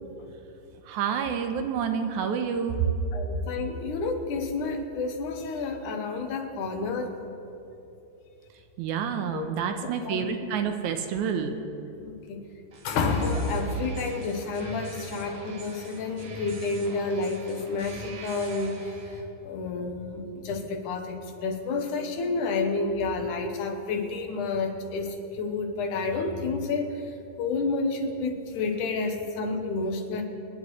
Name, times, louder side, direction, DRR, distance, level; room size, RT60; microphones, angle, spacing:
voice 1, 0.9-2.9 8.8-11.6, right 7 dB, 80° right, 6 dB, 2.2 m, -28 dB
voice 2, 3.1-7.2 9.3-9.5 9.8-10.2 12.0-12.4 12.8-18.9 19.4-27.0 27.4-30.2, left 3 dB, 80° left, 4 dB, 2.6 m, -30 dB
sound 1, 12.7-19.2, right 2 dB, 50° right, 1.6 m, -43 dB
26.5 x 10.0 x 3.2 m, 2.8 s
omnidirectional pair, 3.5 m